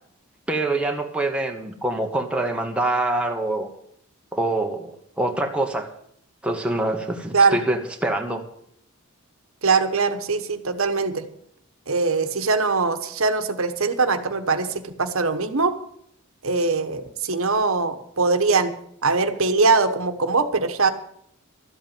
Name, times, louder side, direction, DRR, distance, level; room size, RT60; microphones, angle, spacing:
voice 1, 0.5-3.7 4.3-5.9 6.4-8.5, right 2 dB, 5° right, 2 dB, 1.1 m, -25 dB
voice 2, 9.6-11.2 11.9-14.7 15.0-15.7 16.4-18.7 19.0-20.9, right 4 dB, 70° right, 8 dB, 1.2 m, -21 dB
13.0 x 8.1 x 9.1 m, 0.70 s
head